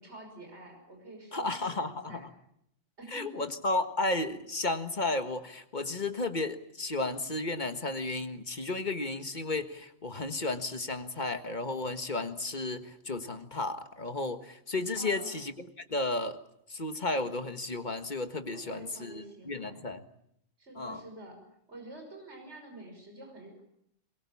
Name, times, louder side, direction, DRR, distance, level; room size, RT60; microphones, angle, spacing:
voice 1, 0.0-2.2 3.0-3.4 14.9-15.4 18.5-19.8 20.6-21.4 21.7-23.6, right 2 dB, 65° right, 2 dB, 6.3 m, -48 dB
voice 2, 1.3-2.3 3.1-16.4 16.7-20.0 20.7-21.0, left 2 dB, 40° left, 8 dB, 1.7 m, -33 dB
23.0 x 22.0 x 8.6 m, 0.74 s
omnidirectional pair, 1.2 m